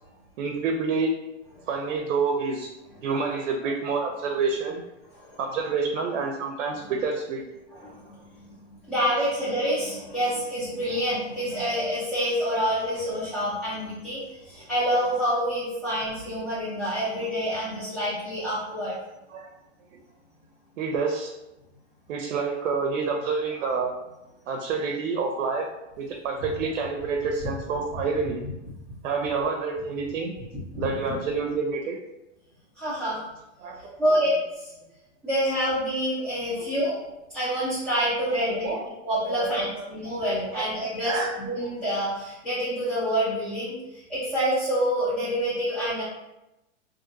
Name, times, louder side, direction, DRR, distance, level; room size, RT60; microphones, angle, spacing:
voice 1, 0.4-1.1 1.7-2.7 3.0-4.8 5.4-7.4 19.3-19.5 20.8-21.3 22.1-23.9 24.5-25.7 26.0-28.4 29.0-30.3 30.8-32.0 33.6-34.0 36.6-36.7 38.5-38.8 39.3-39.9 40.5-40.7 41.0-41.3, right 4 dB, 90° right, 1 dB, 0.6 m, -28 dB
voice 2, 1.5-1.9 2.9-3.2 5.1-5.6 6.1-6.2 6.9-7.2 7.7-19.0 26.4-26.6 27.4-27.5 28.4-28.9 30.5-31.2 32.7-33.2 34.0-34.3 34.6-34.7 35.2-37.0 37.3-38.7 39.0-46.0, equal, 5° left, -14 dB, 0.7 m, -28 dB
2.8 x 2.5 x 2.5 m, 0.96 s
supercardioid pair, 140°, 38 cm